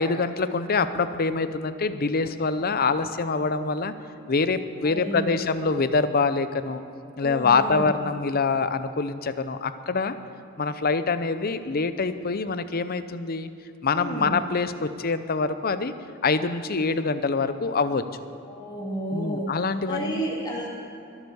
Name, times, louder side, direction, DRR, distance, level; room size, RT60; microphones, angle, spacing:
voice 1, 0.0-3.9 4.3-6.8 7.2-10.2 10.6-13.5 13.8-15.9 16.2-18.0 19.1-20.2, left 4 dB, 45° left, 12 dB, 0.7 m, -25 dB
voice 2, 4.8-5.6 7.2-7.9 13.9-14.4 18.4-19.5 19.9-20.7, right 1 dB, 20° left, -3 dB, 2.7 m, -31 dB
22.5 x 8.1 x 7.0 m, 2.7 s
head